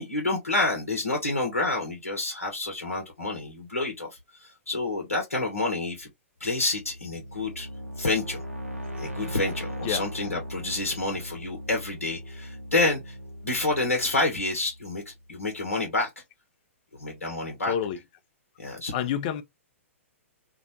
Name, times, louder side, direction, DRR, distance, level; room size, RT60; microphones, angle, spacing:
voice 1, 0.0-4.1 4.4-6.1 6.4-7.7 8.0-8.4 9.0-13.1 13.4-16.1 17.0-17.7 18.6-18.9, left 2 dB, 80° left, 0.8 m, -28 dB
sound 1, 6.6-15.4, equal, 90° right, 0.7 m, -39 dB
voice 2, 17.7-18.0 18.9-19.4, left 9 dB, 40° left, 0.4 m, -28 dB
2.5 x 2.1 x 2.6 m
figure-of-eight pair, 110°, 7 cm